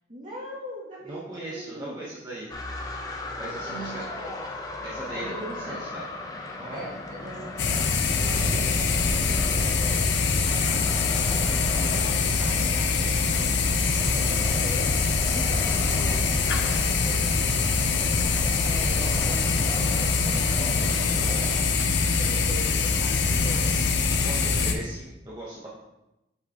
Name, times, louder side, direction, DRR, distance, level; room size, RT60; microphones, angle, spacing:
voice 1, 0.1-2.0 3.6-4.4 5.1-6.0 6.7-10.1 10.4-17.4 18.6-23.7, right 1 dB, 45° right, -7 dB, 2.4 m, -42 dB
voice 2, 1.1-2.5 3.4-4.0 4.8-6.0 6.6-6.8 15.6-15.9 24.2-25.7, right 1 dB, 20° right, -7 dB, 1.0 m, -38 dB
sound 1, 2.5-21.7, left 2 dB, 20° left, 0.7 m, -38 dB
sound 2, 7.6-24.7, left 4 dB, 80° left, 0.6 m, -24 dB
8.1 x 4.7 x 2.9 m, 0.94 s
head